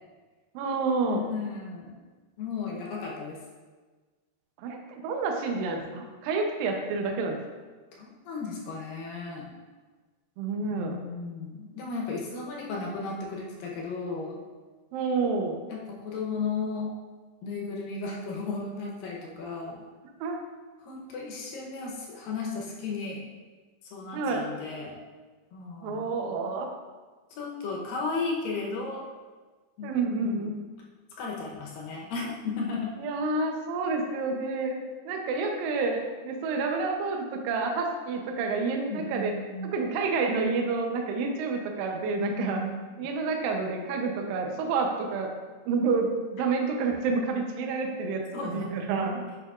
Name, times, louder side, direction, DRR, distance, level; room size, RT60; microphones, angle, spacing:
voice 1, 0.5-1.3 4.6-7.4 10.4-11.0 14.9-15.6 20.2-20.4 24.1-24.5 25.8-26.7 29.8-30.6 33.0-34.8 35.1-39.3 39.7-42.6 43.0-45.3 45.7-49.2, right 4 dB, 80° right, 2 dB, 2.0 m, -29 dB
voice 2, 1.1-1.9 2.4-3.4 7.9-9.5 10.7-14.4 15.7-16.9 17.4-19.8 20.8-23.2 23.9-25.0 25.5-26.2 27.4-29.1 29.8-30.4 31.2-32.9 38.9-39.7 42.2-42.7 48.3-48.7, left 4 dB, 75° left, -2 dB, 2.2 m, -34 dB
8.3 x 5.9 x 2.4 m, 1.4 s
omnidirectional pair, 4.9 m